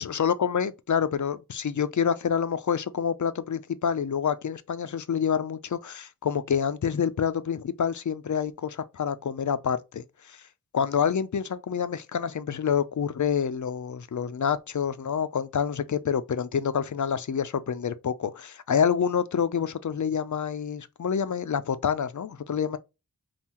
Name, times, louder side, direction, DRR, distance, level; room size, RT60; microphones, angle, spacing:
voice 1, 0.0-10.4 10.7-22.8, left 7 dB, 60° left, 0.5 m, -27 dB
5.5 x 2.5 x 2.9 m
wide cardioid pair, 70°, 34 cm